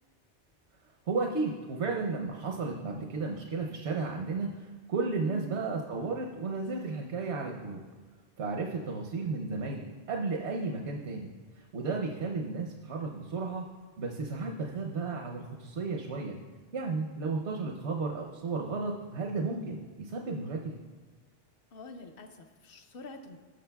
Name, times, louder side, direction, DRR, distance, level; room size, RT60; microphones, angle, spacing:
voice 1, 1.1-7.8 8.4-11.3 11.7-13.6 14.0-16.4 16.7-20.8, right 4 dB, 75° right, 1 dB, 1.0 m, -33 dB
voice 2, 21.7-23.4, left 3 dB, 60° left, 6 dB, 0.9 m, -46 dB
16.5 x 6.2 x 2.3 m, 1.4 s
omnidirectional pair, 1.1 m